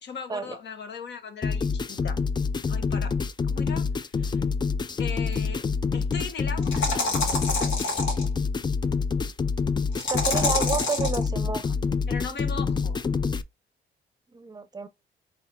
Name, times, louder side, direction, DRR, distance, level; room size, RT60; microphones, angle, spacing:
voice 1, 0.0-2.2 2.7-4.4 5.0-5.6 5.9-7.4 12.1-13.0, left 5 dB, 60° left, 1.0 m, -38 dB
sound 1, 1.4-13.4, left 5 dB, 20° left, 0.4 m, -27 dB
sound 2, 5.3-5.4 6.6-8.3 10.0-11.2, left 2 dB, 80° left, 1.6 m, -27 dB
voice 2, 10.0-11.7 14.3-14.9, right 4 dB, 20° right, 0.6 m, -31 dB
4.0 x 3.9 x 2.7 m
cardioid pair, 90°, 20 cm